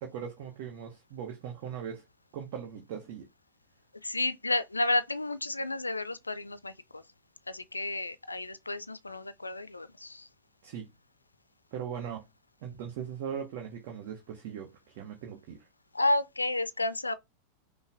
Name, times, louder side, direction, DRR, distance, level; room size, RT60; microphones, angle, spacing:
voice 1, 0.0-2.0 2.3-3.3 10.6-10.9 11.7-12.2 12.6-15.6, right 8 dB, 50° right, 1.0 m, -39 dB
voice 2, 4.0-7.0 7.5-10.3 15.9-17.1, left 2 dB, 80° left, 0.4 m, -31 dB
5.5 x 2.1 x 3.5 m
figure-of-eight pair, 90°, 0 cm